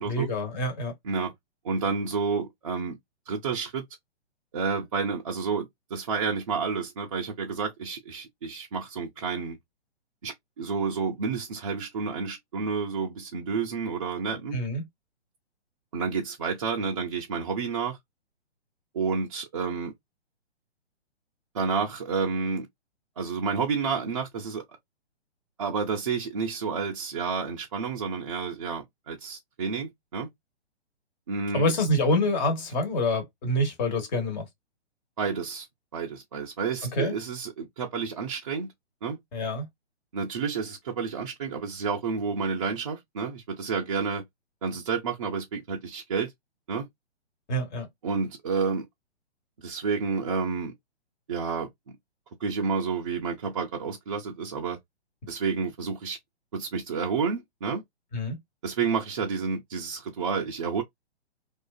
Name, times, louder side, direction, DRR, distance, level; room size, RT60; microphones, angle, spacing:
voice 1, 0.1-0.9 14.5-14.8 31.5-34.5 36.9-37.1 39.3-39.6 47.5-47.9 58.1-58.4, left 1 dB, 40° left, 1.2 m, -26 dB
voice 2, 1.6-3.0 3.3-3.8 4.5-9.6 10.2-14.6 15.9-18.0 18.9-19.9 21.5-22.7 23.2-24.6 25.6-30.3 31.3-31.7 35.2-35.7 35.9-38.7 39.0-39.2 40.1-44.2 44.6-46.3 46.7-46.9 48.0-48.9 49.6-50.7 51.3-52.0 52.4-54.8 55.3-56.2 56.5-57.8 58.6-60.8, right 5 dB, 30° right, 0.4 m, -30 dB
2.4 x 2.3 x 2.3 m
figure-of-eight pair, 130°, 33 cm